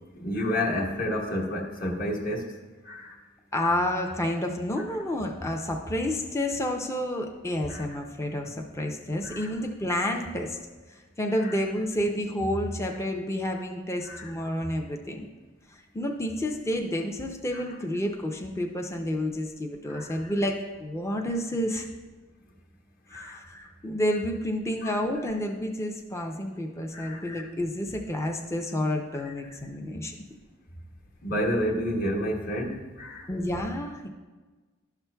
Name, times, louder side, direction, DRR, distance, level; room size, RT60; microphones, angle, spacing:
voice 1, 0.1-2.5 2.8-3.2 4.8-4.9 7.7-7.8 9.2-9.5 11.4-11.6 14.0-14.3 17.5-17.6 19.9-20.2 23.1-23.4 24.8-25.0 26.9-27.2 31.2-33.3, equal, 50° left, -1 dB, 1.2 m, -30 dB
voice 2, 3.5-10.6 11.2-15.3 15.9-21.9 23.1-30.2 33.3-34.1, left 1 dB, 15° left, 2 dB, 0.5 m, -30 dB
12.0 x 5.9 x 2.2 m, 1.3 s
head